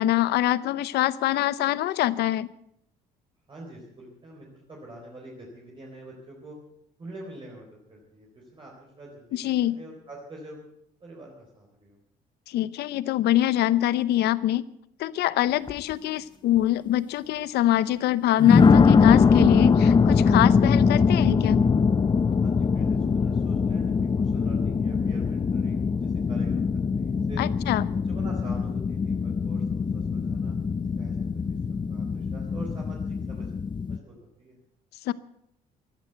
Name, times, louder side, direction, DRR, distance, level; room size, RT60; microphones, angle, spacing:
voice 1, 0.0-2.5 9.3-9.8 12.5-14.6 15.0-21.6 27.4-27.9 35.0-35.1, left 13 dB, 75° left, 18 dB, 0.8 m, -24 dB
voice 2, 3.5-6.6 7.0-10.6 11.0-12.0 22.4-27.4 28.1-30.6 31.0-33.5 33.9-34.6, right 1 dB, 30° right, -2 dB, 4.0 m, -45 dB
sound 1, 15.7-15.9 16.6-16.7 18.4-34.0, left 5 dB, 25° left, 0.7 m, -22 dB
15.5 x 11.0 x 8.0 m, 0.76 s
cardioid pair, 110°, 17 cm